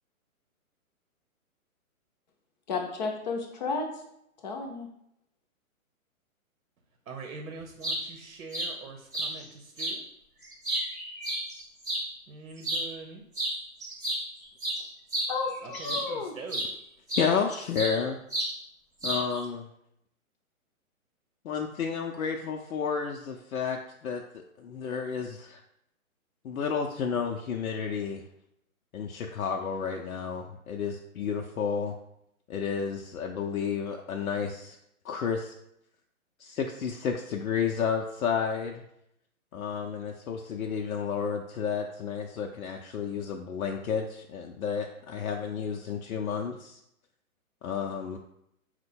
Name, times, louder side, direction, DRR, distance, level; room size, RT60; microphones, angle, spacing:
voice 1, 2.7-3.9 4.4-4.9 15.3-16.4, left 4 dB, 30° left, 2 dB, 0.6 m, -32 dB
voice 2, 7.1-10.0 12.3-13.2 15.6-16.6, right 4 dB, 75° right, 3 dB, 0.9 m, -43 dB
sound 1, 7.6-8.0 8.5-8.7 9.1-9.3 9.8-10.0 10.4-12.0 12.6-12.9 13.3-13.6 13.8-16.1 16.5-16.7 17.1-18.0 18.3-18.5 19.0-19.4, right 1 dB, 15° right, 0.4 m, -31 dB
voice 3, 17.1-18.2 19.0-19.7 21.4-25.6 26.4-28.2 28.9-31.9 32.5-34.8 35.0-35.5 36.4-38.8 39.5-46.8 47.6-48.2, left 6 dB, 75° left, 2 dB, 0.6 m, -31 dB
4.3 x 2.2 x 4.3 m, 0.77 s
hypercardioid pair, 145°, 43 cm